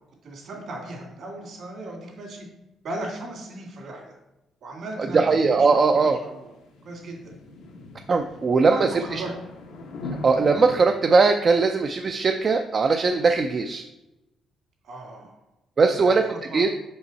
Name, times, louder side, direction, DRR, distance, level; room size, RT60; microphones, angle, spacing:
voice 1, 0.2-2.5 2.8-4.1 4.6-5.3 5.6-6.5 6.8-7.2 8.6-9.3 14.8-15.4 15.8-16.2 16.5-16.7, right 2 dB, 65° right, 0 dB, 2.4 m, -36 dB
voice 2, 5.1-6.2 8.1-8.7 10.2-13.8 15.8-16.2 16.5-16.7, right 4 dB, 40° right, 4 dB, 0.5 m, -19 dB
sound 1, 5.2-10.8, left 3 dB, 85° left, 1.1 m, -40 dB
5.5 x 5.4 x 4.1 m, 0.94 s
cardioid pair, 90°, 0 cm